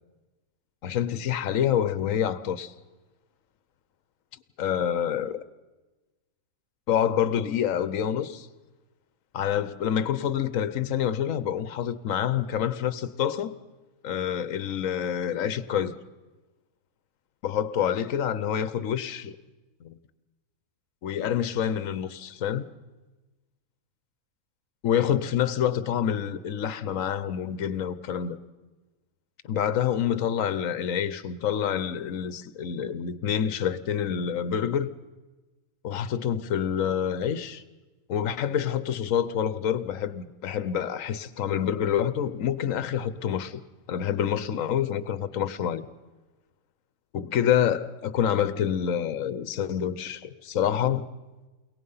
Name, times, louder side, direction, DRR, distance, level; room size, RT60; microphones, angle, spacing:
voice 1, 0.8-2.7 4.6-5.4 6.9-8.5 9.3-13.6 14.0-16.0 17.4-19.4 19.8-20.0 21.0-22.7 24.8-28.4 29.4-34.9 35.8-37.6 38.1-43.6 43.9-45.9 47.1-51.1, left 9 dB, 70° left, 1.3 m, -27 dB
29.5 x 18.0 x 5.6 m
omnidirectional pair, 1.5 m